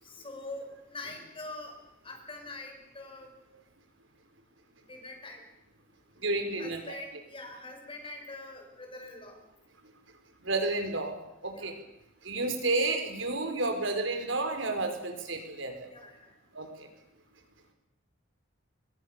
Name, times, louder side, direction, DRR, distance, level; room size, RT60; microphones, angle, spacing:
voice 1, 0.0-3.3 4.9-5.4 6.6-9.4 11.5-11.7 15.9-16.3, left 2 dB, 25° left, 4 dB, 6.3 m, -44 dB
voice 2, 6.2-6.8 10.4-11.2 11.4-11.8 12.2-15.9 16.5-16.9, right 2 dB, 65° right, 6 dB, 5.3 m, -31 dB
29.5 x 23.5 x 7.1 m, 0.81 s
head